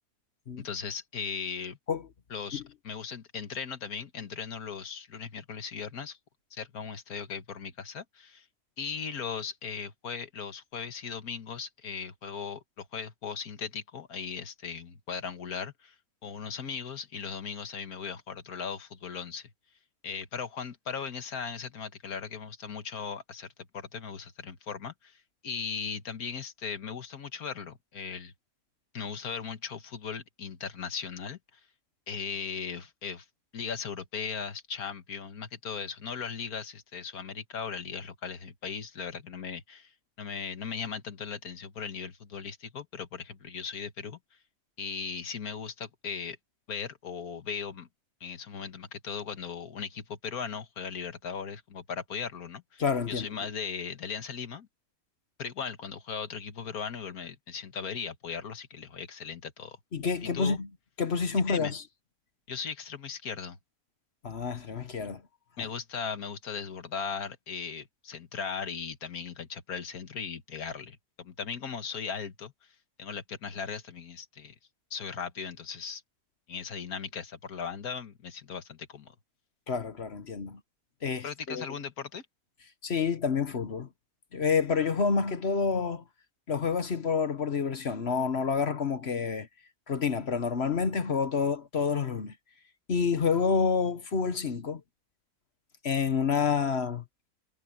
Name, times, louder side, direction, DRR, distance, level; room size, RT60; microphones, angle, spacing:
voice 1, 0.6-1.8 2.3-6.2 6.5-8.5 8.8-16.0 16.2-19.5 20.0-28.3 28.9-31.6 32.1-33.3 33.5-44.2 44.8-46.4 46.7-47.9 48.2-52.8 53.1-54.7 55.4-59.8 60.2-60.6 61.5-61.7 62.5-63.6 65.6-74.6 74.9-76.0 76.5-79.2 81.2-82.2, left 6 dB, 70° left, 1.9 m, -38 dB
voice 2, 52.8-53.3 59.9-60.7 61.0-61.8 64.2-65.2 79.7-80.6 81.0-81.6 82.8-83.9 84.3-86.0 86.5-89.5 89.9-92.3 92.9-94.8 95.8-97.0, left 5 dB, 45° left, 1.3 m, -28 dB
omnidirectional pair, 1.6 m